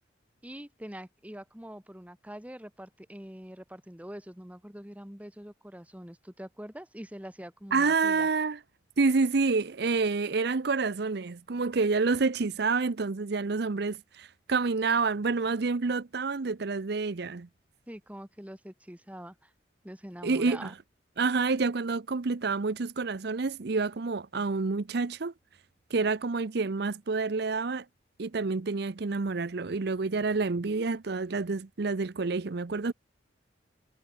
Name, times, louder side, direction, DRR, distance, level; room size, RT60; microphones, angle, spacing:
voice 1, 0.4-8.3 17.9-19.5 19.8-20.7, equal, 10° right, 1.7 m, -44 dB
voice 2, 7.7-8.6 9.0-17.5 20.2-20.7 21.2-25.3 25.9-27.8 28.2-32.9, right 4 dB, 60° right, 0.7 m, -28 dB
head